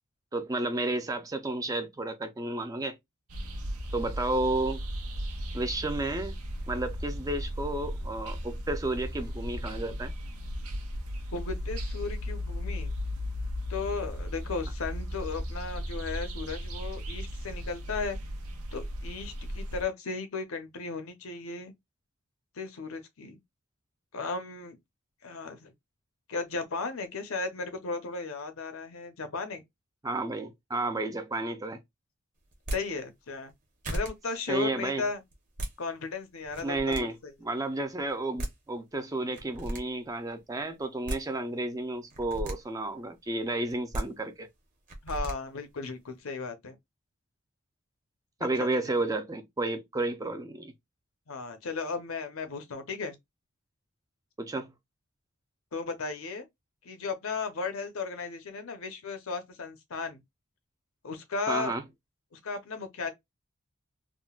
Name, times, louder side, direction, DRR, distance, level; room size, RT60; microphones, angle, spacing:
voice 1, 0.3-3.0 3.9-4.8 5.5-6.4 6.7-10.1 30.0-31.8 34.5-35.0 36.6-44.5 48.4-50.7 54.4-54.7 61.5-61.8, right 2 dB, 15° right, 0.3 m, -32 dB
sound 1, 3.3-19.8, equal, 90° right, 0.8 m, -36 dB
voice 2, 11.3-12.9 13.7-18.2 18.7-21.7 22.6-23.4 24.1-24.8 25.2-25.7 26.3-29.6 32.7-33.5 33.9-35.2 35.8-37.3 45.0-46.7 48.6-48.7 51.3-53.2 55.7-56.4 56.8-60.2 61.0-61.7 62.3-63.1, left 4 dB, 70° left, 0.7 m, -35 dB
sound 2, 32.5-32.8 33.5-33.6 33.8-34.1 35.3-35.7 36.4-37.0 38.1-38.2 38.4-38.5 39.3-39.8 40.8-41.2 42.1-42.5 43.7-44.0 44.9-45.3, right 1 dB, 35° right, 0.8 m, -34 dB
3.7 x 2.1 x 2.3 m
head